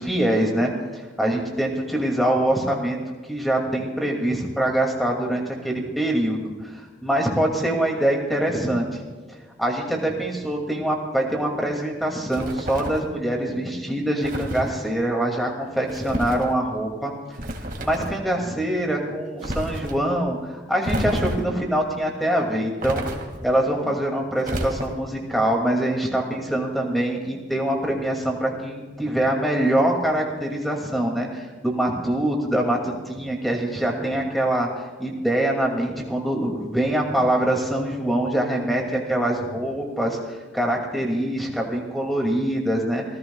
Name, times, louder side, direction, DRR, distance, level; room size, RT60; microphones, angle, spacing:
voice 1, 0.0-3.0 3.3-9.0 9.6-17.1 17.8-23.1 23.4-34.7 35.0-43.0, right 1 dB, ahead, 0 dB, 2.4 m, -24 dB
sound 1, 12.3-13.1 14.2-14.7 15.9-16.5 17.3-18.2 19.4-20.0 20.8-21.6 22.8-23.5 24.4-25.1, right 1 dB, 50° right, 2.1 m, -30 dB
27.0 x 15.0 x 2.4 m, 1.4 s
head